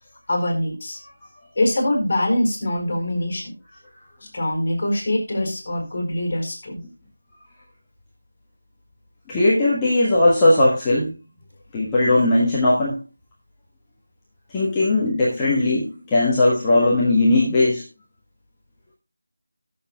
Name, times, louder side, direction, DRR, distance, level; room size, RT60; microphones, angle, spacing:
voice 1, 0.3-1.0 1.6-3.5 4.3-6.8, left 1 dB, 30° left, 2 dB, 4.2 m, -23 dB
voice 2, 9.3-11.2 11.7-13.0 14.5-17.8, left 2 dB, 10° left, -7 dB, 1.4 m, -18 dB
20.0 x 7.0 x 2.3 m, 0.29 s
figure-of-eight pair, 165°, 0 cm